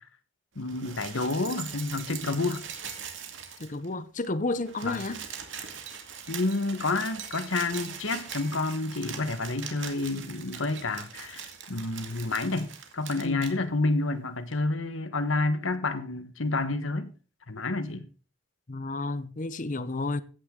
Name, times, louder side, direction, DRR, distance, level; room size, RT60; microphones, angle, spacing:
voice 1, 0.5-2.6 4.8-5.0 6.3-17.1 17.5-18.1, left 3 dB, 85° left, 1.4 m, -29 dB
sound 1, 0.6-3.9 4.2-4.3 4.5-13.5 14.5-14.6, right 7 dB, 70° right, 2.3 m, -41 dB
voice 2, 3.6-5.2 13.2-13.5 18.7-20.2, left 2 dB, 40° left, 0.8 m, -31 dB
16.0 x 9.3 x 3.8 m
head